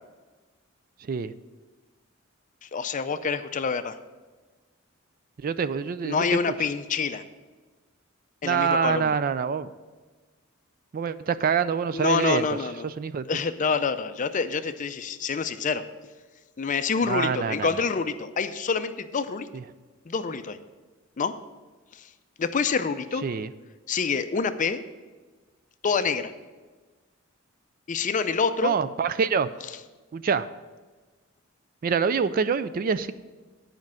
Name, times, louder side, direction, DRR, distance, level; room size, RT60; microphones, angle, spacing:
voice 1, 2.6-4.0 6.0-7.2 8.4-9.2 11.9-12.9 13.3-15.8 16.6-19.5 20.1-20.6 21.2-21.3 21.9-22.1 22.4-23.2 23.9-24.8 25.8-26.3 27.9-28.8, left 5 dB, 40° left, 11 dB, 0.5 m, -27 dB
voice 2, 5.4-6.2 8.4-9.7 10.9-12.5 12.8-13.2 17.0-17.7 19.5-19.6 23.2-23.5 28.6-29.5 30.1-30.5 31.8-33.1, right 6 dB, 45° right, 14 dB, 0.3 m, -25 dB
9.7 x 5.2 x 7.5 m, 1.3 s
head